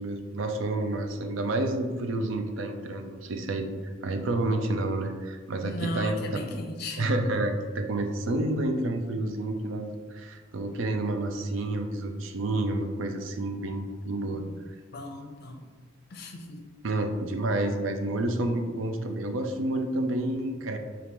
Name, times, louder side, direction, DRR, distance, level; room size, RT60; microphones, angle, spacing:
voice 1, 0.0-6.4 7.0-14.4 16.8-20.8, right 2 dB, 75° right, 6 dB, 0.4 m, -29 dB
voice 2, 5.6-7.1 14.9-15.6 16.1-16.6, left 1 dB, 50° left, 2 dB, 0.5 m, -36 dB
5.1 x 2.4 x 3.0 m, 1.5 s
head